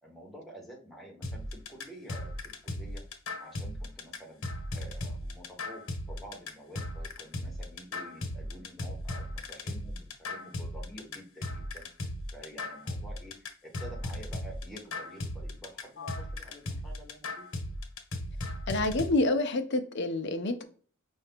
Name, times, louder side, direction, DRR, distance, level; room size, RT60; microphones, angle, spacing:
voice 1, 0.0-4.4 4.7-17.4, right 1 dB, ahead, -2 dB, 1.3 m, -49 dB
sound 1, 1.2-19.1, left 1 dB, 75° left, 1.1 m, -37 dB
voice 2, 18.7-20.6, left 2 dB, 55° left, 7 dB, 0.6 m, -28 dB
5.5 x 2.6 x 3.5 m, 0.43 s
head